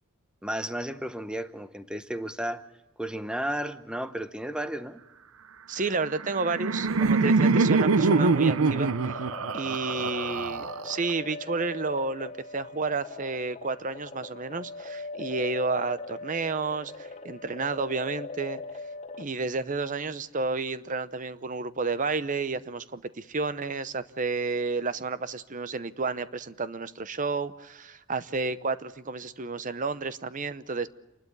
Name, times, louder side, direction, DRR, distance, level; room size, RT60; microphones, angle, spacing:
voice 1, 0.4-2.6 3.0-5.0, right 1 dB, 5° right, 0.7 m, -33 dB
voice 2, 5.7-9.2 9.5-18.6 19.2-30.9, right 4 dB, 40° right, 0.7 m, -31 dB
Laughter, 6.1-11.1, right 4 dB, 75° right, 0.7 m, -24 dB
sound 1, 7.8-19.3, left 3 dB, 30° left, 0.7 m, -40 dB
28.0 x 12.0 x 10.0 m
head